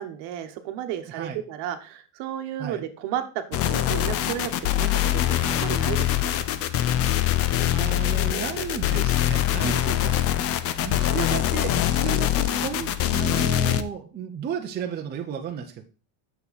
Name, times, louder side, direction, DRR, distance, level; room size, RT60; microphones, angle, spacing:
voice 1, 0.0-6.4 9.6-10.0, right 11 dB, 55° right, 8 dB, 1.2 m, -33 dB
voice 2, 1.1-1.4 2.6-2.9 7.7-10.4 10.8-15.8, right 8 dB, 20° right, 3 dB, 0.6 m, -34 dB
sound 1, 3.5-13.8, left 12 dB, 30° left, 0.4 m, -23 dB
7.1 x 6.8 x 4.1 m, 0.35 s
cardioid pair, 165°, 50 cm